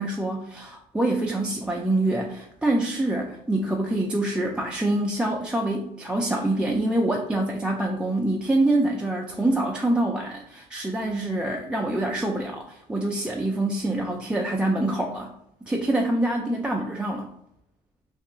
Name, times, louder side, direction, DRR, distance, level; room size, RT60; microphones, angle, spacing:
voice 1, 0.0-15.3 15.6-17.3, right 1 dB, 5° right, -1 dB, 0.3 m, -25 dB
2.8 x 2.4 x 3.6 m, 0.79 s
cardioid pair, 110°, 17 cm